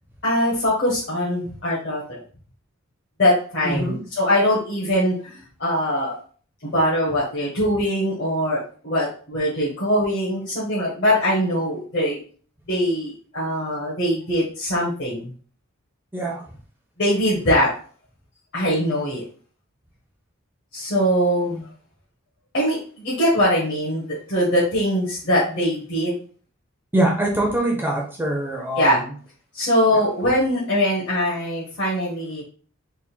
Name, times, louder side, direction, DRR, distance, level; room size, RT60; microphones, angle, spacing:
voice 1, 0.2-2.2 3.2-6.2 6.6-12.2 12.7-15.3 17.0-17.7 18.5-19.2 20.7-21.7 22.5-26.1 28.7-29.0 29.5-32.4, equal, 55° left, -8 dB, 1.1 m, -22 dB
voice 2, 3.6-4.0 16.1-16.4 26.9-28.9 29.9-30.0, right 1 dB, 10° right, -1 dB, 0.6 m, -23 dB
3.5 x 2.2 x 4.3 m, 0.43 s
head